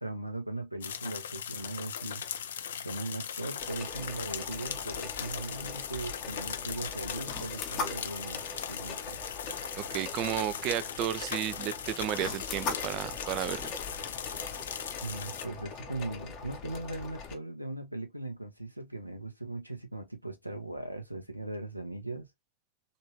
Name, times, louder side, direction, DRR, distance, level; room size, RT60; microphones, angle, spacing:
voice 1, 0.0-2.2 2.8-9.2 15.0-22.3, right 2 dB, 90° right, 0.6 m, -39 dB
sound 1, 0.8-15.5, left 8 dB, 65° left, 0.4 m, -39 dB
sound 2, 3.6-17.3, left 4 dB, 40° left, 0.8 m, -41 dB
voice 2, 9.8-13.7, right 12 dB, 40° right, 0.3 m, -33 dB
3.2 x 2.6 x 2.9 m
figure-of-eight pair, 90°, 0 cm